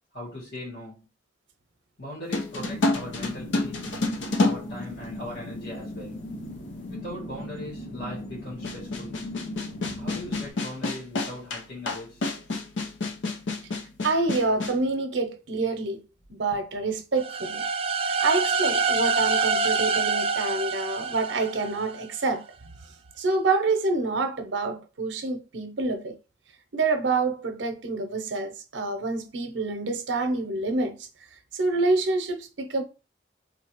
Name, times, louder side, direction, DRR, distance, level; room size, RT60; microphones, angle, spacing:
voice 1, 0.1-1.1 2.0-4.0 4.4-6.2 6.9-9.2 10.0-12.2, left 1 dB, 75° left, 2.0 m, -39 dB
sound 1, 2.3-5.5 6.4-6.5 8.6-14.8, left 2 dB, 90° left, 0.7 m, -28 dB
sound 2, 2.6-10.5, left 1 dB, 40° left, 0.7 m, -38 dB
voice 2, 14.0-16.0 16.3-17.6 18.2-22.4 23.2-26.1 26.7-31.1 31.5-32.8, right 3 dB, 85° right, 0.7 m, -27 dB
sound 3, 17.2-22.0, right 4 dB, 30° right, 0.4 m, -26 dB
3.9 x 2.8 x 3.0 m
head